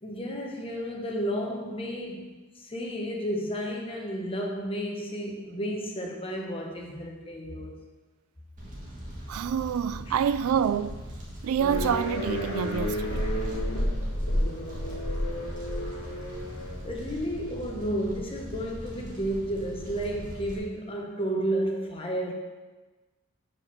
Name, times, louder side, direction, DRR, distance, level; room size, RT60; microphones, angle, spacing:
voice 1, 0.0-7.7 10.1-10.3 16.8-22.3, equal, 25° left, 1.1 m, -32 dB
Fire, 8.6-20.6, equal, 40° right, 1.6 m, -41 dB
voice 2, 9.3-11.0 11.4-13.4, right 8 dB, 85° right, 0.3 m, -27 dB
sound 1, 11.6-16.9, left 1 dB, 85° left, 1.5 m, -31 dB
6.0 x 4.9 x 6.1 m
head